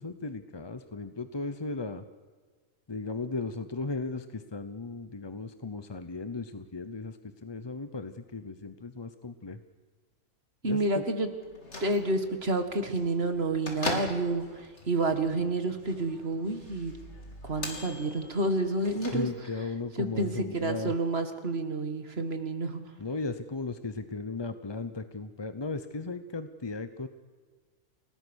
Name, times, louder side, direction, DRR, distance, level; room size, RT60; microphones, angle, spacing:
voice 1, 0.0-2.0 2.9-9.6 10.6-11.0 19.1-20.9 23.0-27.1, left 3 dB, 25° left, 10 dB, 0.6 m, -36 dB
voice 2, 10.6-11.3 11.8-16.9 17.4-19.3 20.0-22.8, right 2 dB, 40° right, 7 dB, 2.2 m, -29 dB
Bell / Microwave oven, 11.4-19.7, left 1 dB, 50° left, 3.7 m, -41 dB
29.5 x 18.5 x 6.4 m, 1.4 s
omnidirectional pair, 1.6 m